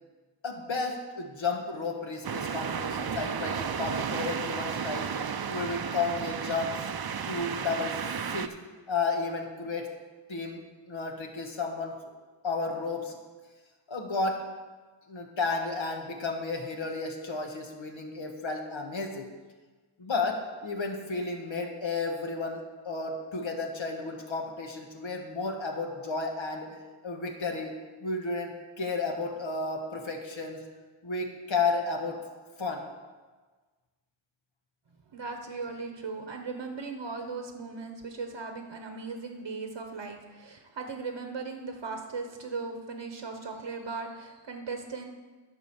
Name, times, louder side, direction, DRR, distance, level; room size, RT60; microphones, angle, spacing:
voice 1, 0.4-5.1 5.5-6.9 7.3-8.5 8.9-9.9 10.3-12.0 12.4-13.1 13.9-14.4 15.1-19.3 20.0-26.7 27.0-30.6 31.0-32.2 32.6-32.9, left 3 dB, 75° left, 2 dB, 1.5 m, -32 dB
sound 1, 2.2-8.5, right 7 dB, 50° right, 0.6 m, -33 dB
voice 2, 35.1-45.1, right 4 dB, 70° right, 4 dB, 1.1 m, -38 dB
10.5 x 5.1 x 7.0 m, 1.4 s
wide cardioid pair, 60°, 47 cm